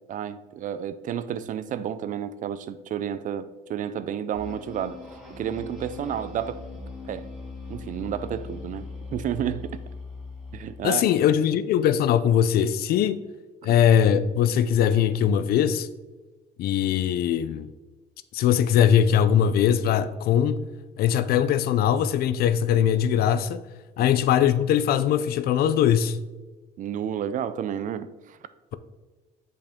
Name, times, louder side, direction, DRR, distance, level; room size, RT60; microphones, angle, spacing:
voice 1, 0.1-5.0 5.4-6.6 7.1-7.3 7.7-9.8 10.5-11.1 13.6-13.7 24.0-24.1 26.8-28.4, right 9 dB, 50° right, 0.4 m, -31 dB
sound 1, 4.3-10.9, left 4 dB, 5° right, 1.7 m, -40 dB
voice 2, 10.8-13.2 13.6-15.9 16.6-17.7 18.3-20.6 21.0-23.6 24.0-26.2, left 9 dB, 65° left, 0.4 m, -21 dB
6.7 x 5.2 x 3.6 m
cardioid pair, 110°, 17 cm